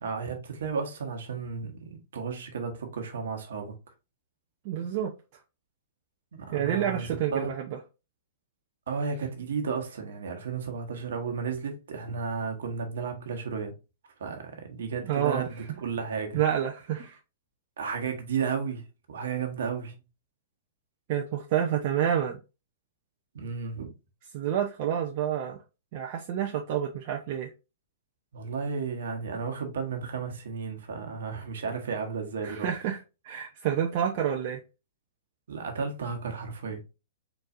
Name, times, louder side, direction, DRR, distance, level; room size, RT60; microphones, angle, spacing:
voice 1, 0.0-3.7 6.3-7.5 8.9-13.8 14.2-16.4 17.8-20.0 23.3-23.9 28.3-32.7 35.5-36.8, right 5 dB, 70° right, 1.3 m, -33 dB
voice 2, 4.6-5.1 6.5-7.8 15.1-15.4 16.3-17.2 21.1-22.4 24.3-25.6 25.9-27.5 32.4-34.6, right 9 dB, 50° right, 0.7 m, -28 dB
4.5 x 4.2 x 2.5 m
hypercardioid pair, 110°, 0 cm